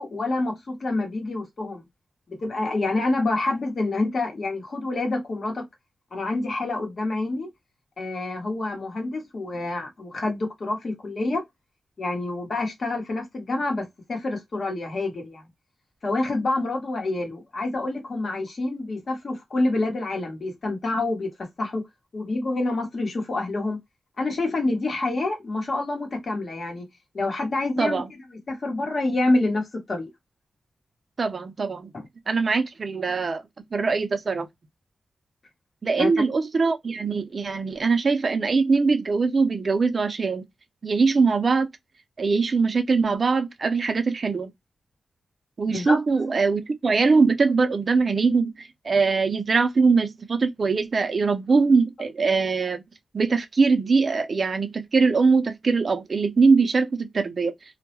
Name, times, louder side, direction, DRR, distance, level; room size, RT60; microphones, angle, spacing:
voice 1, 0.0-1.8 2.3-5.7 6.1-7.5 8.0-11.4 12.0-15.4 16.0-21.3 21.6-21.8 22.1-23.8 24.2-26.9 27.1-30.1 36.0-36.1 45.6-46.0, left 2 dB, 50° left, 0.9 m, -27 dB
voice 2, 31.2-31.9 32.3-33.4 33.7-34.5 35.8-40.4 40.8-41.7 42.2-44.5 45.6-52.8 53.1-57.5, right 4 dB, 45° right, 0.4 m, -22 dB
2.2 x 2.0 x 2.9 m
wide cardioid pair, 145°, 0 cm